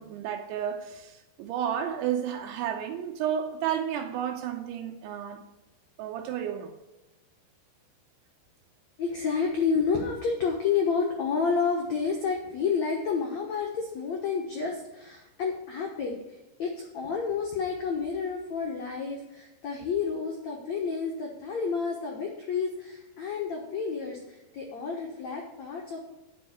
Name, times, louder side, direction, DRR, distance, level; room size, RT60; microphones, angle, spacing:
voice 1, 0.0-5.4 6.0-6.7, right 9 dB, 85° right, 4 dB, 3.2 m, -32 dB
voice 2, 9.0-26.1, left 5 dB, 75° left, 0 dB, 1.6 m, -30 dB
9.5 x 5.6 x 8.2 m, 1.0 s
omnidirectional pair, 5.3 m